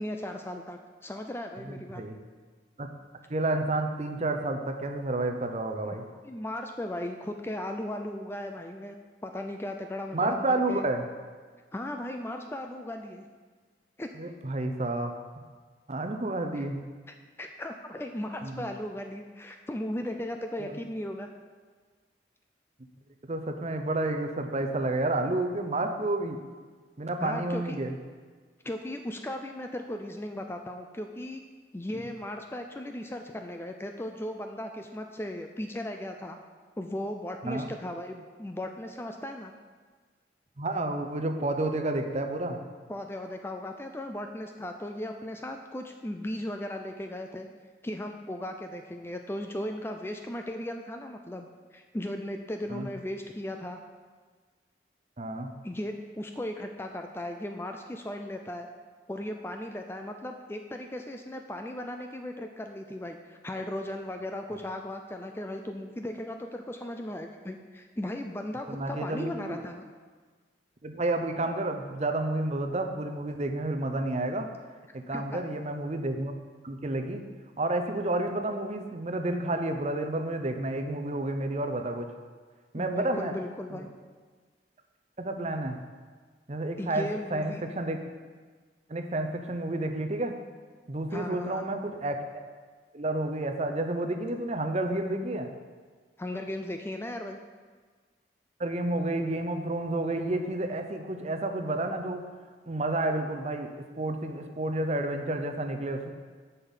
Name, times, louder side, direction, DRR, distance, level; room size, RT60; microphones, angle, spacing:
voice 1, 0.0-2.0 5.8-6.0 6.2-9.0 9.2-10.9 11.7-13.3 14.0-14.1 16.5-16.6 17.4-21.3 27.2-27.8 28.6-31.4 31.7-36.4 36.8-39.5 42.9-47.5 47.8-53.8 55.6-58.7 59.1-69.8 75.1-75.4 82.8-83.9 86.8-87.6 91.1-91.6 96.2-97.4, left 1 dB, 15° left, 4 dB, 0.4 m, -37 dB
voice 2, 1.6-2.2 2.8-2.9 3.3-6.0 10.1-11.0 14.2-15.1 15.9-16.8 18.4-18.6 20.6-20.8 23.3-26.4 27.0-27.9 37.4-37.7 40.6-42.6 52.7-52.9 55.2-55.5 68.7-69.6 70.8-74.5 74.9-76.3 76.6-77.2 77.6-82.1 82.7-83.3 83.7-83.8 85.2-85.8 86.5-88.0 88.9-90.3 90.9-92.4 92.9-95.5 98.6-102.2 102.7-103.7 104.0-106.1, right 2 dB, 35° right, 6 dB, 0.7 m, -30 dB
7.2 x 5.7 x 7.2 m, 1.5 s
head